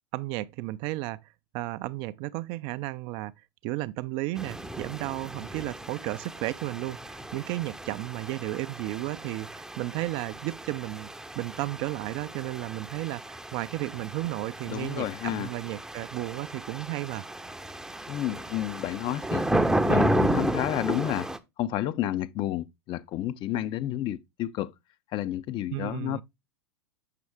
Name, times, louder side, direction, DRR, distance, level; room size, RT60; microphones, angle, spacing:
voice 1, 0.1-1.2 1.5-3.3 3.6-11.1 11.4-17.3 25.7-26.2, right 18 dB, 45° right, 0.4 m, -33 dB
sound 1, 4.4-21.4, right 1 dB, 5° right, 0.6 m, -33 dB
voice 2, 14.7-15.5 18.1-19.5 19.8-21.3 21.6-24.7 25.1-26.2, left 13 dB, 35° left, 0.5 m, -30 dB
6.6 x 6.1 x 3.5 m
hypercardioid pair, 95°, 13 cm